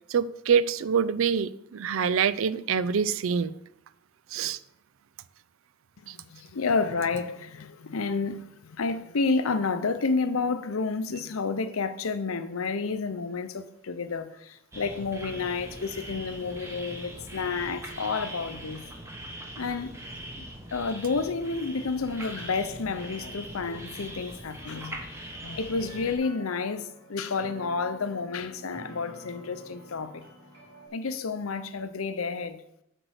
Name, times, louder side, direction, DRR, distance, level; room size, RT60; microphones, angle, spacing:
voice 1, 0.1-3.5 4.3-4.6 6.1-6.2, right 6 dB, 75° right, 0.4 m, -25 dB
voice 2, 6.0-18.8 19.6-19.9 20.4-30.2 30.9-32.6, left 4 dB, 85° left, 0.7 m, -30 dB
sound 1, 14.7-26.2, right 1 dB, 15° right, 1.2 m, -41 dB
sound 2, 25.7-30.9, right 1 dB, 55° right, 3.0 m, -49 dB
7.9 x 4.6 x 6.5 m
head